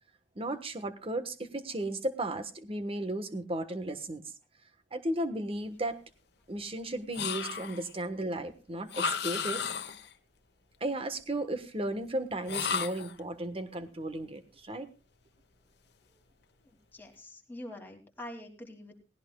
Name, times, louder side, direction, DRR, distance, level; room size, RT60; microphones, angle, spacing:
voice 1, 0.3-4.2 4.9-6.0 6.5-9.6 10.8-14.9, right 1 dB, 30° right, 9 dB, 1.3 m, -35 dB
sound 1, 7.1-7.9 8.9-10.1 12.5-13.2, left 6 dB, 65° left, 1.1 m, -33 dB
voice 2, 16.6-18.9, left 1 dB, 10° left, 1 dB, 2.6 m, -46 dB
18.0 x 16.5 x 2.3 m, 0.30 s
head